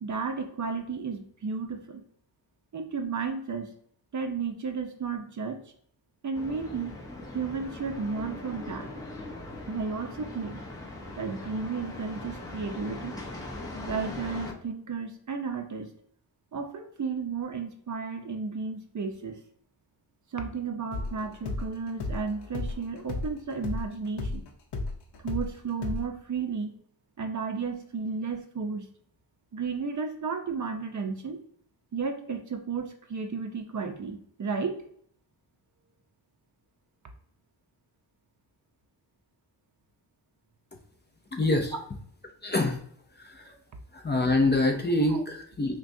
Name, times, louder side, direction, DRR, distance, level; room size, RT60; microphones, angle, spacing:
voice 1, 0.0-2.0 2.7-3.7 4.1-5.6 6.2-6.9 7.3-8.9 9.7-10.6 11.2-13.2 13.8-15.9 16.5-19.4 20.3-24.5 25.2-26.7 27.2-28.9 29.5-31.4 31.9-34.8 41.7-41.8 45.1-45.2, right 5 dB, 45° right, 5 dB, 0.6 m, -33 dB
sound 1, 6.3-14.5, left 2 dB, 10° left, 0.9 m, -40 dB
sound 2, 20.9-25.5 25.8-26.0, left 2 dB, 65° left, 0.7 m, -34 dB
voice 2, 41.3-41.7 42.4-42.8 43.2-43.5 43.9-45.8, left 2 dB, 25° left, 3 dB, 0.5 m, -25 dB
5.9 x 2.3 x 2.6 m, 0.63 s
wide cardioid pair, 130°, 43 cm